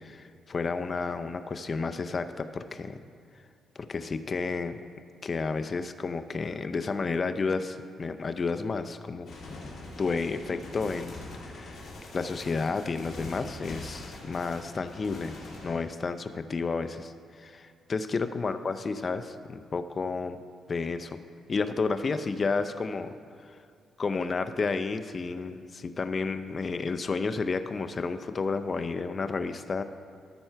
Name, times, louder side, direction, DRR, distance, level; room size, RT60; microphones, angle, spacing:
voice 1, 0.0-3.0 3.8-4.8 5.2-9.3 10.0-11.1 11.4-11.9 12.1-15.4 15.6-20.4 20.7-21.2 21.5-23.1 23.4-23.6 24.0-29.8, left 4 dB, 35° left, 9 dB, 0.5 m, -31 dB
sound 1, 9.2-15.8, left 2 dB, 55° left, 2.2 m, -43 dB
13.5 x 4.5 x 5.7 m, 2.2 s
cardioid pair, 105°, 0 cm